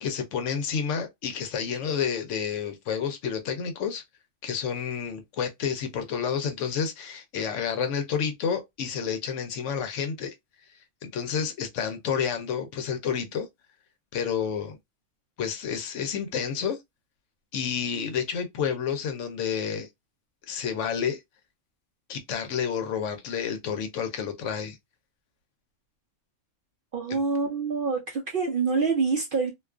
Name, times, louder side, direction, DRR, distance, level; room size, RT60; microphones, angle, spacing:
voice 1, 0.0-4.0 4.4-10.3 11.0-13.5 14.1-14.8 15.4-16.8 17.5-19.9 20.5-21.2 22.1-24.8 27.1-27.2, left 7 dB, 70° left, 0.8 m, -30 dB
voice 2, 26.9-29.5, right 4 dB, 60° right, 0.5 m, -26 dB
2.4 x 2.3 x 2.3 m
omnidirectional pair, 1.4 m